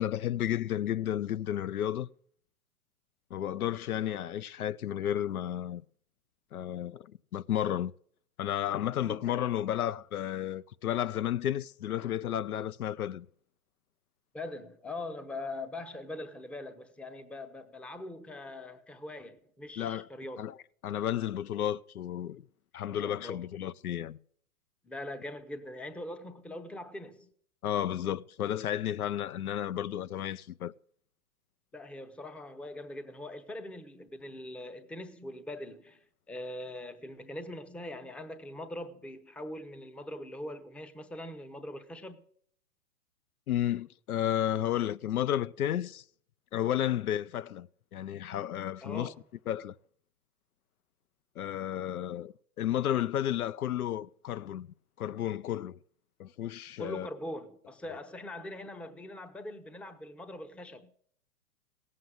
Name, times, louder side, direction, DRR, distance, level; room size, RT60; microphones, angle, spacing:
voice 1, 0.0-2.1 3.3-5.8 6.5-7.9 8.4-13.3 19.8-20.1 20.4-20.5 20.8-22.4 22.7-24.2 27.6-30.7 43.5-46.0 46.5-49.1 49.5-49.7 51.4-54.7 55.0-55.8 56.2-57.1, left 11 dB, 80° left, 0.7 m, -32 dB
voice 2, 14.3-20.5 22.9-23.4 24.8-27.3 31.7-42.2 48.8-49.2 56.8-60.9, left 1 dB, 5° left, 0.6 m, -42 dB
17.0 x 7.6 x 7.9 m
hypercardioid pair, 120°, 43 cm